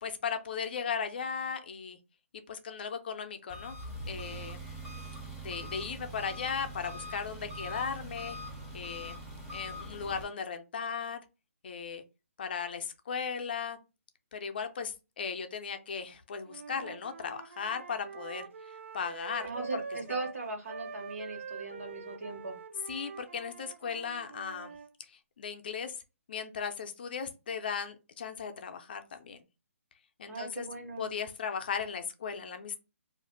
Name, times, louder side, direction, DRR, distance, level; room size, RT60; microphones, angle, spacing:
voice 1, 0.0-2.0 2.5-3.8 4.1-4.6 5.4-8.4 8.7-9.2 9.5-11.2 11.6-12.0 12.4-13.8 14.3-18.5 18.9-19.7 22.9-24.7 25.1-25.9 26.3-29.4 30.2-30.7 31.0-32.8, left 6 dB, 45° left, 7 dB, 0.4 m, -37 dB
Engine, 3.5-10.2, equal, 10° right, 0.5 m, -42 dB
Wind instrument woodwind instrument, 16.5-20.4 20.7-24.9, right 5 dB, 60° right, 0.4 m, -45 dB
voice 2, 19.4-22.6 30.3-31.1, right 3 dB, 75° right, 3 dB, 1.1 m, -39 dB
2.4 x 2.1 x 3.8 m, 0.29 s
hypercardioid pair, 160°, 8 cm